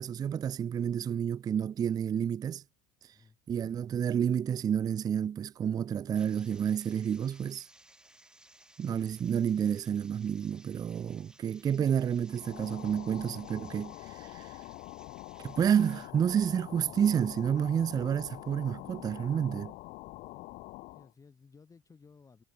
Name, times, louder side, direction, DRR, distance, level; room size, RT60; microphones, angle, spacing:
voice 1, 0.0-2.6 3.5-7.7 8.8-14.6 15.4-19.7, right 8 dB, 20° right, 0.4 m, -30 dB
sound 1, 6.1-16.1, right 1 dB, 5° right, 5.5 m, -60 dB
sound 2, 12.3-21.1, left 20 dB, 55° left, 0.8 m, -46 dB
voice 2, 20.9-22.4, left 5 dB, 20° left, 3.2 m, -58 dB
supercardioid pair, 120°, 17 cm